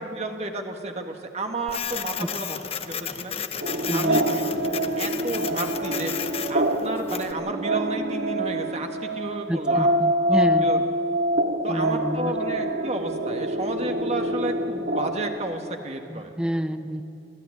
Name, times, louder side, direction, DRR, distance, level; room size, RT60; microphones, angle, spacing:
voice 1, 0.0-3.3 3.9-4.4 5.0-6.1 6.5-9.9 10.3-10.8 11.6-16.3, right 2 dB, 35° right, 4 dB, 1.6 m, -32 dB
Printer, 1.7-7.3, left 8 dB, 30° left, 0.8 m, -33 dB
sound 1, 3.6-15.4, right 1 dB, 60° right, 1.9 m, -26 dB
voice 2, 3.9-4.3 9.5-10.7 11.7-12.3 16.1-17.0, equal, 5° right, 10 dB, 0.6 m, -28 dB
25.0 x 14.5 x 9.6 m, 2.7 s
head